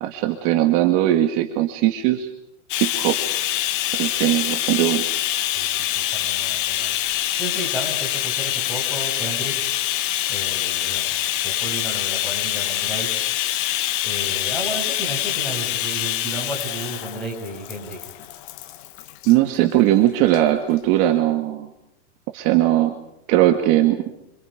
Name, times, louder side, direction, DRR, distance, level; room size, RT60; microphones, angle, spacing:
voice 1, 0.0-2.3 2.8-3.2 3.9-5.0 19.3-21.7 22.3-22.9 23.3-24.1, right 14 dB, 35° right, 5 dB, 2.1 m, -19 dB
Bathtub (filling or washing), 2.7-19.3 20.3-20.4 20.8-20.9, left 14 dB, 45° left, 1.7 m, -25 dB
voice 2, 5.9-6.9 7.4-9.5 10.3-11.2 11.4-13.2 14.0-18.1, right 1 dB, 5° left, -1 dB, 7.7 m, -33 dB
30.0 x 26.5 x 5.2 m, 0.81 s
supercardioid pair, 160°, 36 cm